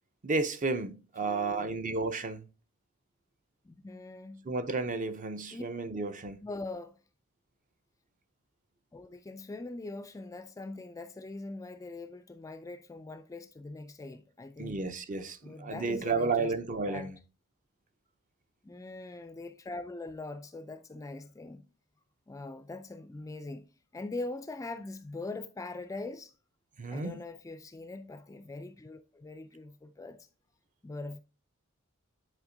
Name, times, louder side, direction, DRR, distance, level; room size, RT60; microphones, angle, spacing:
voice 1, 0.2-2.5 4.5-6.4 14.6-17.1 26.8-27.2, right 3 dB, 35° right, 0.5 m, -32 dB
voice 2, 1.2-1.8 3.6-4.5 5.5-5.6 6.4-7.0 8.9-14.8 15.4-16.5 16.9-17.1 18.6-21.6 22.3-23.7 23.9-26.3 26.9-30.2 30.8-31.2, left 2 dB, 15° left, 0.3 m, -42 dB
9.7 x 4.2 x 2.6 m
head